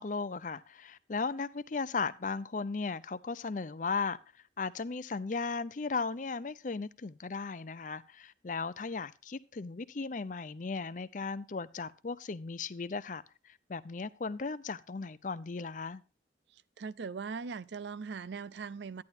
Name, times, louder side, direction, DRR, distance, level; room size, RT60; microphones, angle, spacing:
voice 1, 0.0-4.2 4.6-13.2 13.7-16.0, left 4 dB, 45° left, 0.5 m, -36 dB
voice 2, 16.5-19.0, right 5 dB, 70° right, 0.4 m, -40 dB
10.5 x 10.5 x 2.7 m
head